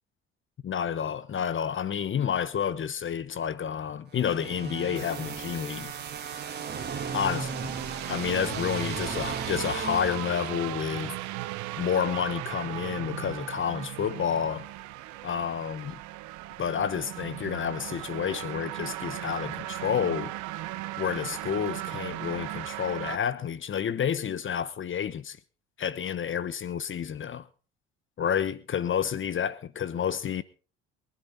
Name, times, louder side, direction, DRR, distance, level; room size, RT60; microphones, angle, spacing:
voice 1, 0.6-5.9 7.1-7.7 8.1-11.1 11.8-14.7 15.2-16.0 16.6-20.3 21.0-25.4 25.8-27.5 28.2-30.4, left 8 dB, 40° left, 1.1 m, -30 dB
sound 1, 4.2-10.8, right 5 dB, 30° right, 3.1 m, -37 dB
sound 2, 4.9-23.2, right 17 dB, 65° right, 1.1 m, -37 dB
23.5 x 11.5 x 4.1 m
hypercardioid pair, 60°, 32 cm